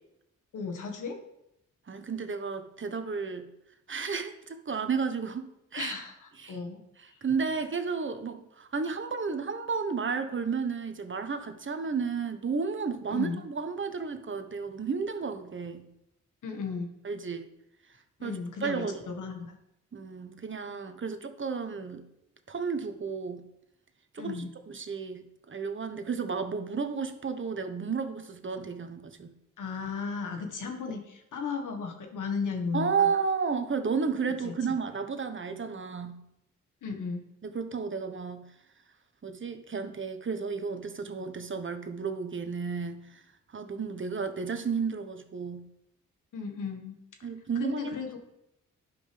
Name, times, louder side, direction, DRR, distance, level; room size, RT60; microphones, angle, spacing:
voice 1, 0.5-1.2 5.8-6.8 13.1-13.4 16.4-16.9 18.2-19.6 24.2-24.5 29.6-33.1 34.4-34.5 36.8-37.2 46.3-47.0 47.5-48.1, left 5 dB, 70° left, 4 dB, 1.6 m, -35 dB
voice 2, 1.9-3.5 3.9-6.0 6.4-6.6 7.2-15.9 17.0-17.5 18.2-19.0 19.9-22.0 22.5-23.4 24.1-24.4 24.7-29.3 32.7-36.2 37.4-38.4 39.2-43.2 43.5-45.6 47.2-48.0, right 5 dB, 40° right, 8 dB, 1.2 m, -32 dB
11.0 x 5.4 x 3.4 m, 0.82 s
supercardioid pair, 50°, 32 cm